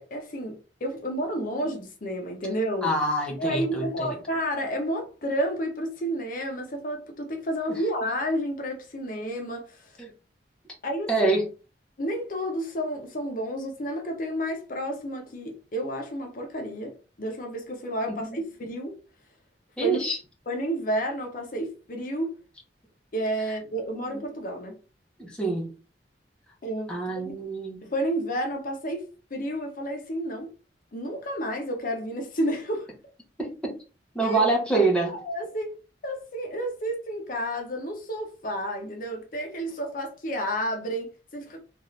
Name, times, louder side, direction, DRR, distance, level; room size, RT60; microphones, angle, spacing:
voice 1, 0.0-2.9 3.4-10.0 10.8-11.3 12.0-19.0 19.8-20.0 20.5-22.3 23.1-24.8 26.6-27.5 27.8-30.5 30.9-32.9 34.2-34.4 34.8-35.8 36.0-41.6, equal, 50° left, 0.6 m, -31 dB
voice 2, 2.8-3.8 10.0-10.1 11.1-11.4 19.8-20.2 25.2-25.7 26.9-27.8 33.4-33.8 34.1-35.1, right 2 dB, 5° left, 0.7 m, -25 dB
2.6 x 2.4 x 3.1 m
head